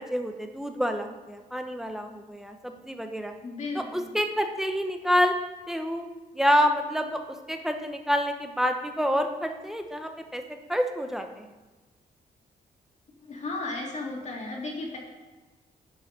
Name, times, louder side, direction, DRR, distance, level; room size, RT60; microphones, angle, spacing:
voice 1, 0.0-3.3 3.7-5.4 5.7-6.1 6.3-7.2 7.5-10.4 10.7-11.5, equal, ahead, 5 dB, 0.9 m, -27 dB
voice 2, 3.4-4.2 13.2-15.0, left 2 dB, 45° left, -1 dB, 2.1 m, -35 dB
9.7 x 5.4 x 5.6 m, 1.2 s
cardioid pair, 105°, 17 cm